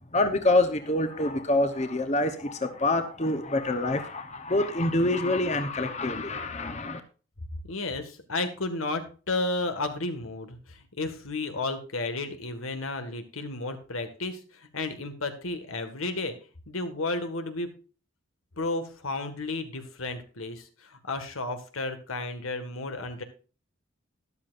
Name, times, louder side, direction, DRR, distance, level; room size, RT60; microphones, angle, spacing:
voice 1, 0.1-7.0, left 2 dB, 35° left, 8 dB, 1.0 m, -26 dB
voice 2, 7.7-16.4 16.7-17.7 18.6-23.2, left 2 dB, 85° left, 8 dB, 1.8 m, -33 dB
13.0 x 11.5 x 2.6 m, 0.36 s
head